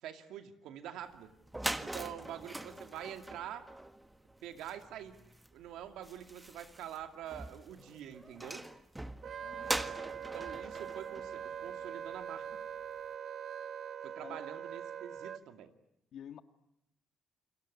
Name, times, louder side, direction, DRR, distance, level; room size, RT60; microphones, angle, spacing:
voice 1, 0.0-1.4 1.8-3.7 4.4-5.2 5.5-8.7 10.3-12.6 14.0-15.7, right 10 dB, 90° right, 7 dB, 2.3 m, -46 dB
sound 1, 1.1-1.2 1.4-12.2, right 1 dB, 10° right, 1.6 m, -43 dB
voice 2, 2.3-2.6 9.4-9.9 14.2-14.4 16.1-16.4, left 9 dB, 70° left, 9 dB, 1.6 m, -51 dB
Wind instrument woodwind instrument, 9.2-15.4, right 8 dB, 55° right, 1.0 m, -43 dB
29.0 x 20.5 x 9.7 m, 0.83 s
cardioid pair, 90°, 0 cm